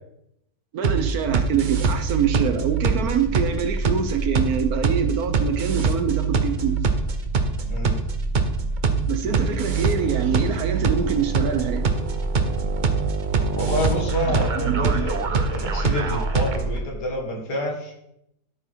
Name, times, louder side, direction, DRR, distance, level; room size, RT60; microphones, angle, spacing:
voice 1, 0.7-6.8 9.1-11.9 14.3-14.5 14.8-15.1, right 7 dB, 65° right, 8 dB, 1.2 m, -25 dB
sound 1, 0.8-16.8, right 4 dB, 50° right, 0.6 m, -23 dB
voice 2, 13.5-17.9, left 1 dB, 70° left, -1 dB, 2.6 m, -28 dB
12.5 x 4.7 x 4.5 m, 0.79 s
omnidirectional pair, 1.8 m